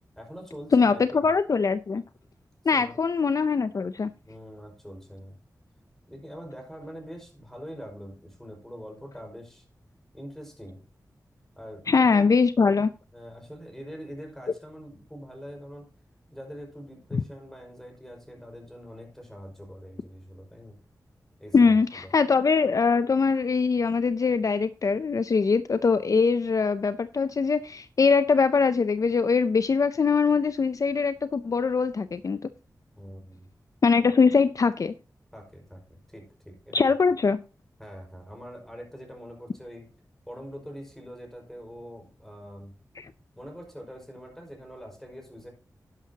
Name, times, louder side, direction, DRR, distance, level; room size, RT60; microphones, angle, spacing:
voice 1, 0.2-1.3 2.7-3.0 4.2-5.4 6.1-9.7 10.1-10.8 11.6-12.3 13.1-15.9 16.3-20.8 21.4-21.8 22.0-22.1 33.0-33.5 35.3-36.8 37.8-39.9 40.3-42.7 43.4-45.5, equal, 5° left, 5.0 m, -43 dB
voice 2, 0.7-2.0 2.7-4.1 11.9-12.9 21.5-32.4 33.8-34.9 36.7-37.4 43.0-43.1, left 5 dB, 55° left, 0.5 m, -22 dB
11.5 x 10.5 x 2.8 m
wide cardioid pair, 85°, 7 cm